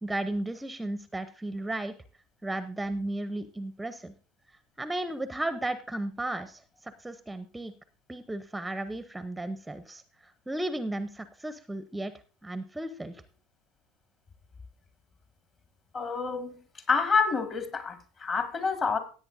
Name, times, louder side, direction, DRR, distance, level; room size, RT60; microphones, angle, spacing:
voice 1, 0.0-1.9 2.4-4.1 4.8-7.7 8.1-12.1 12.4-13.2, right 1 dB, 10° right, 0.7 m, -34 dB
voice 2, 15.9-16.6 16.9-19.0, left 5 dB, 35° left, 1.9 m, -27 dB
17.0 x 8.6 x 2.6 m
hypercardioid pair, 70°, 0 cm